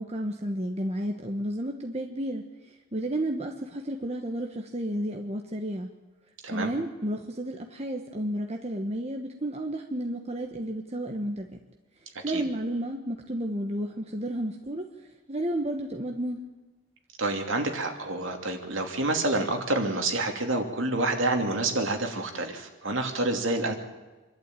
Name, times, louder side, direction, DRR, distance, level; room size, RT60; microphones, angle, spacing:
voice 1, 0.0-5.9 6.5-11.5 12.2-14.9 15.3-16.4, right 1 dB, 30° right, 2 dB, 1.2 m, -32 dB
voice 2, 17.2-23.7, right 2 dB, 60° right, 3 dB, 2.8 m, -28 dB
26.0 x 12.0 x 9.1 m, 1.2 s
head